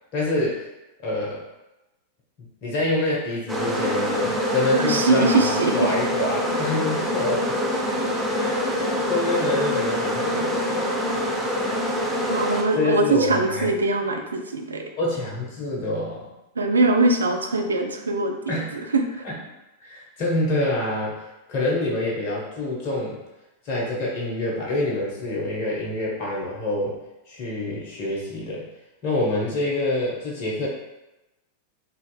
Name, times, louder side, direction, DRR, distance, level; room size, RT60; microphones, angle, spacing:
voice 1, 0.1-0.7 1.0-1.4 2.6-7.6 8.3-10.9 12.7-13.7 15.0-16.3 18.5-18.7 19.2-19.4 19.8-23.2 23.6-27.0 27.3-28.7 29.0-30.7, left 2 dB, 45° left, -4 dB, 0.8 m, -26 dB
sound 1, 3.5-12.6, equal, 5° right, 0.6 m, -25 dB
voice 2, 4.7-5.9 12.3-14.8 16.6-19.0, right 3 dB, 75° right, 4 dB, 0.4 m, -22 dB
3.9 x 2.5 x 2.3 m, 0.97 s
figure-of-eight pair, 90°, 0 cm